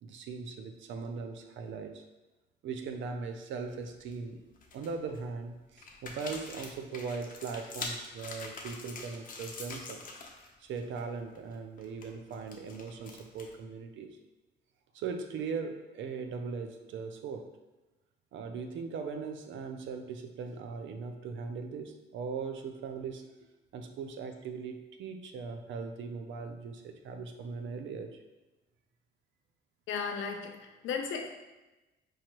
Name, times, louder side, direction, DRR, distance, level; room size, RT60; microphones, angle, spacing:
voice 1, 0.0-2.0 2.6-4.4 4.7-10.0 10.6-14.2 14.9-17.5 18.3-23.2 23.7-28.2, right 5 dB, 75° right, 6 dB, 0.5 m, -39 dB
sound 1, 3.6-4.1 4.6-5.2 5.8-10.5 10.7-11.0 11.3-13.6, left 3 dB, 45° left, 0.7 m, -44 dB
voice 2, 29.9-31.3, left 6 dB, 80° left, 4 dB, 0.6 m, -35 dB
4.7 x 2.9 x 3.0 m, 1.1 s
cardioid pair, 90°, 20 cm